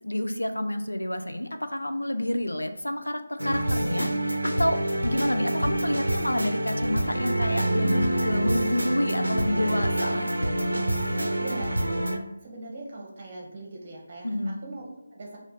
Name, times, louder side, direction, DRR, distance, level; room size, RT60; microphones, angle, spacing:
voice 1, 0.0-10.5 14.2-14.6, left 1 dB, 80° left, 7 dB, 0.4 m, -29 dB
sound 1, 3.4-12.2, right 1 dB, 80° right, 0.5 m, -26 dB
voice 2, 11.1-12.0 12.4-14.3 14.6-15.4, right 2 dB, 35° right, -1 dB, 0.9 m, -40 dB
3.3 x 2.4 x 3.9 m, 0.90 s
figure-of-eight pair, 155°, 0 cm